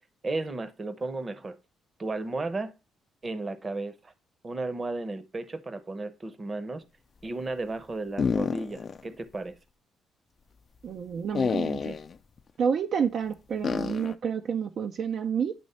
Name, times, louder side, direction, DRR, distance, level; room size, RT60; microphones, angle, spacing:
voice 1, 0.2-1.6 2.0-2.7 3.2-4.1 4.4-6.8 7.2-9.5, right 2 dB, 30° right, 0.9 m, -34 dB
sound 1, 8.2-9.0 9.3-9.4 11.3-12.1 13.6-14.2, left 6 dB, 45° left, 0.5 m, -28 dB
voice 2, 10.8-11.9 12.6-15.5, right 7 dB, 60° right, 0.5 m, -29 dB
9.3 x 3.1 x 4.2 m
cardioid pair, 90°, 0 cm